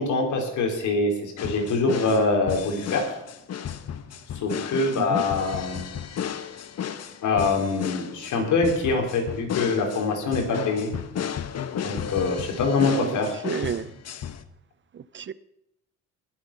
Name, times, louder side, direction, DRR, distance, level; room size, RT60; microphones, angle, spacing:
voice 1, 0.0-3.0 4.4-5.8 7.2-10.9 11.8-13.3, left 3 dB, 75° left, 3.8 m, -24 dB
sound 1, 1.4-14.4, left 9 dB, 55° left, 1.1 m, -33 dB
voice 2, 13.4-13.9 14.9-15.3, right 8 dB, 40° right, 0.6 m, -31 dB
19.5 x 7.8 x 5.9 m
cardioid pair, 90°, 30 cm